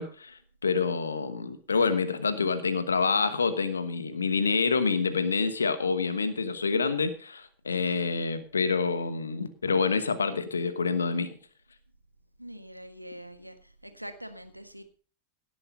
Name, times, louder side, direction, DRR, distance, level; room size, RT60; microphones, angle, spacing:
voice 1, 0.0-11.3, left 4 dB, 75° left, 12 dB, 1.2 m, -27 dB
voice 2, 12.4-13.6 13.8-14.8, equal, 90° right, 9 dB, 1.4 m, -44 dB
17.0 x 7.8 x 5.3 m, 0.39 s
figure-of-eight pair, 90°, 0 cm